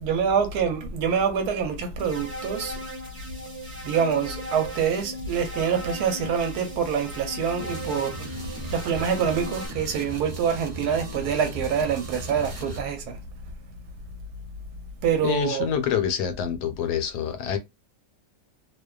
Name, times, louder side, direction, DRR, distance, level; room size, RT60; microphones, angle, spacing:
voice 1, 0.0-2.8 3.8-8.3 8.7-13.2 15.0-15.7, right 7 dB, 70° right, 1.1 m, -26 dB
sound 1, 2.0-9.7, equal, 20° right, 1.1 m, -37 dB
sound 2, 7.6-12.8, right 2 dB, 55° right, 0.4 m, -38 dB
voice 2, 15.2-17.6, left 8 dB, 75° left, 1.1 m, -26 dB
2.7 x 2.2 x 2.2 m
omnidirectional pair, 1.8 m